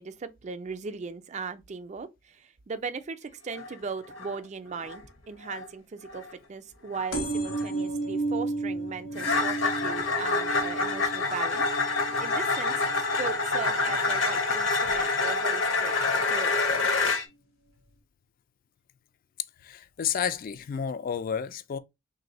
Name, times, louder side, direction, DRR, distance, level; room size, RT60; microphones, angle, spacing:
voice 1, 0.0-15.9 16.3-16.8, right 5 dB, 35° right, 0.4 m, -38 dB
sound 1, 3.5-3.7 4.0-4.4 4.8-5.1 5.4-5.7 6.1-6.3 6.9-7.1 7.5-7.7 9.1-17.3, left 3 dB, 65° left, 0.8 m, -27 dB
sound 2, 7.1-14.3 14.8-15.3 16.2-16.3 16.5-16.6 16.8-16.9, right 2 dB, 80° left, 1.3 m, -34 dB
voice 2, 19.6-21.8, left 7 dB, 45° left, 0.3 m, -31 dB
3.1 x 2.6 x 4.0 m
head